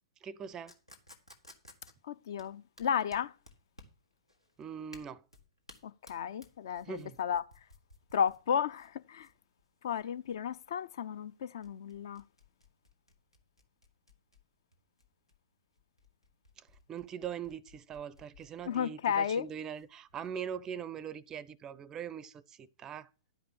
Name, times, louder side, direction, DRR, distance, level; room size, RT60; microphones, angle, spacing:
voice 1, 0.2-0.8 4.6-5.2 6.8-7.2 16.6-23.1, right 8 dB, 20° right, 0.4 m, -42 dB
sound 1, 0.7-20.3, left 1 dB, 90° left, 1.8 m, -59 dB
voice 2, 2.1-3.3 6.1-7.4 8.1-9.3 9.8-12.2 18.7-19.4, left 8 dB, 55° left, 0.5 m, -33 dB
11.5 x 5.1 x 7.1 m
figure-of-eight pair, 110°, 3 cm